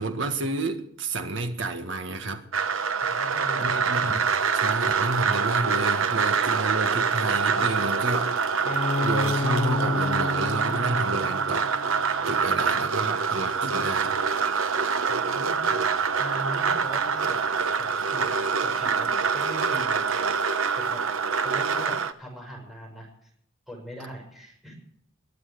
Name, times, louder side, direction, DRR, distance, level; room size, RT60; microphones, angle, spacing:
voice 1, 0.0-2.4 3.6-4.2 4.5-8.4 9.0-11.8 12.3-14.2, right 2 dB, 65° right, 6 dB, 1.7 m, -30 dB
sound 1, 2.5-22.1, right 5 dB, 90° right, 1.0 m, -25 dB
voice 2, 3.0-4.2 15.1-15.9 16.2-17.4 17.8-20.4 20.7-21.0 21.4-23.3 23.7-24.8, right 1 dB, ahead, -2 dB, 6.2 m, -41 dB
Bowed string instrument, 8.7-12.3, left 3 dB, 30° left, 0.7 m, -30 dB
22.0 x 7.7 x 7.7 m, 0.67 s
head